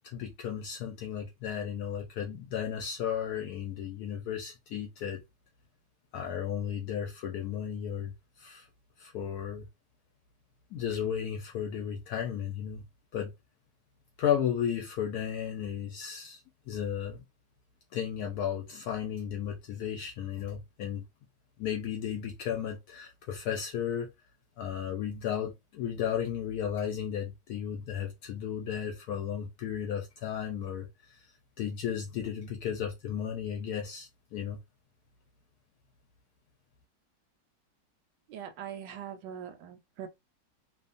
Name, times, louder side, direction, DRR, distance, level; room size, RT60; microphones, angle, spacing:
voice 1, 0.1-5.2 6.1-8.1 8.4-8.7 9.0-9.7 10.7-12.8 13.1-13.3 14.2-16.4 16.7-17.2 17.9-21.0 21.6-24.1 24.6-30.9 31.6-34.6, left 9 dB, 70° left, 1.0 m, -34 dB
voice 2, 38.3-40.1, right 9 dB, 90° right, 1.3 m, -42 dB
2.9 x 2.2 x 2.5 m
omnidirectional pair, 1.9 m